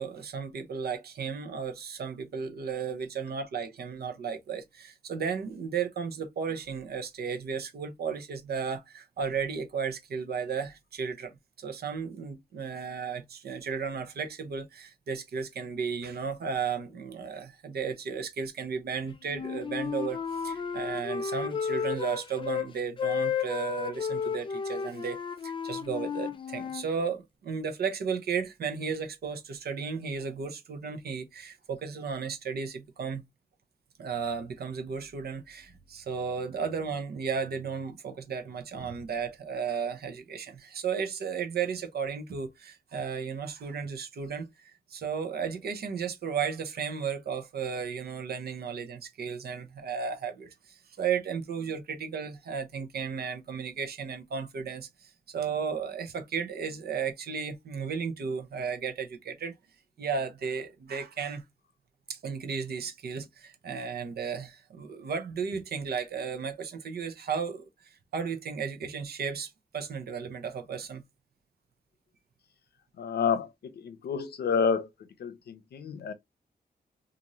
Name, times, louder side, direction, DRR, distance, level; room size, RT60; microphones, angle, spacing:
voice 1, 0.0-33.2 34.0-59.5 60.0-61.4 62.1-67.7 68.1-71.0, right 6 dB, 75° right, 0.7 m, -34 dB
Wind instrument woodwind instrument, 19.3-22.7 23.0-26.8, left 6 dB, 30° left, 0.3 m, -33 dB
voice 2, 73.0-74.9 75.2-76.1, left 6 dB, 80° left, 0.6 m, -29 dB
2.6 x 2.5 x 2.9 m
wide cardioid pair, 130°, 17 cm